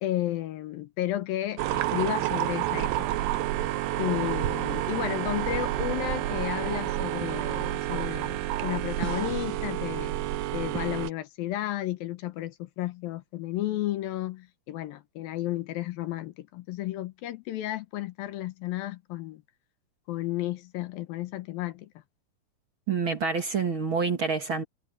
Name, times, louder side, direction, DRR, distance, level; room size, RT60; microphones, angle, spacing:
voice 1, 0.0-3.2 4.0-10.1 10.5-19.4 20.1-21.9, left 14 dB, 75° left, 2.8 m, -33 dB
sound 1, 1.6-11.1, right 14 dB, 80° right, 2.6 m, -29 dB
voice 2, 22.9-24.6, right 5 dB, 40° right, 2.2 m, -27 dB
omnidirectional pair, 4.2 m